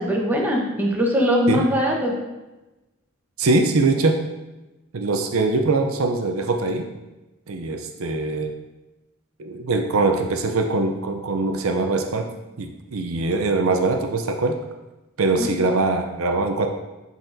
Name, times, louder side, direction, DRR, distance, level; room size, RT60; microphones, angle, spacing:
voice 1, 0.0-2.1 15.4-15.5, equal, 10° right, -2 dB, 0.9 m, -21 dB
voice 2, 3.4-4.2 4.9-6.9 7.5-8.5 9.4-12.3 12.6-14.6 15.2-16.7, right 3 dB, 75° right, 5 dB, 0.6 m, -22 dB
10.5 x 4.0 x 2.6 m, 1.1 s
head